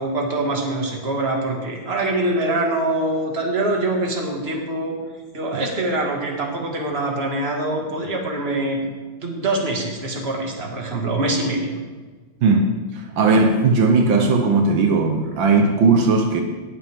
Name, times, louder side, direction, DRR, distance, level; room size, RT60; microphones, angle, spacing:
voice 1, 0.0-4.9 5.3-8.9 9.2-11.8, right 2 dB, 30° right, 0 dB, 2.1 m, -24 dB
voice 2, 12.4-16.4, right 3 dB, 80° right, 4 dB, 1.7 m, -17 dB
18.5 x 8.1 x 3.6 m, 1.4 s
omnidirectional pair, 2.1 m